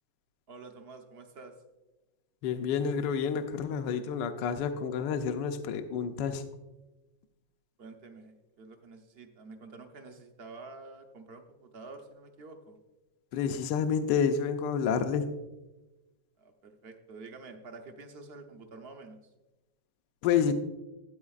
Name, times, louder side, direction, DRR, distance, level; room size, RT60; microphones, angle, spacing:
voice 1, 0.5-1.5 7.8-12.8 16.4-19.2, right 3 dB, 50° right, 5 dB, 0.7 m, -48 dB
voice 2, 2.4-6.4 13.3-15.3 20.2-20.5, left 7 dB, 75° left, 8 dB, 1.2 m, -29 dB
13.5 x 8.5 x 2.4 m, 1.1 s
omnidirectional pair, 2.1 m